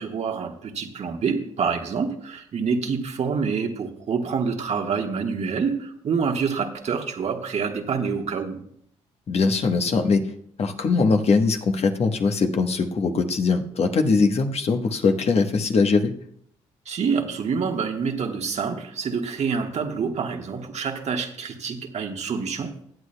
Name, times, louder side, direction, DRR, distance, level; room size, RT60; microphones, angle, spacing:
voice 1, 0.0-8.6 16.8-22.7, right 5 dB, 55° right, 3 dB, 1.4 m, -27 dB
voice 2, 9.3-10.3 10.6-16.1, left 4 dB, 50° left, 5 dB, 1.1 m, -21 dB
20.0 x 8.1 x 2.2 m, 0.68 s
supercardioid pair, 60°, 14 cm